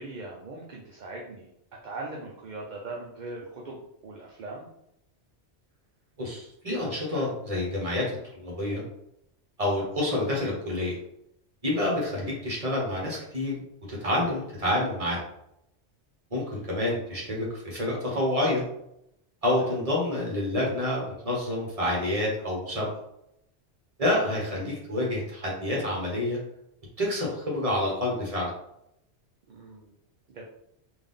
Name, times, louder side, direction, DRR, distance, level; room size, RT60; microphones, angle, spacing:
voice 1, 0.0-1.5 1.8-4.7 11.7-11.8 19.6-19.7 29.5-30.0 30.3-30.4, right 2 dB, 50° right, -2 dB, 0.6 m, -40 dB
voice 2, 6.2-8.8 9.6-11.0 11.6-13.6 13.9-15.2 16.3-18.6 19.4-22.9 24.0-26.4 27.0-28.5, left 1 dB, 30° right, -4 dB, 1.4 m, -28 dB
3.6 x 2.6 x 3.6 m, 0.78 s
omnidirectional pair, 1.2 m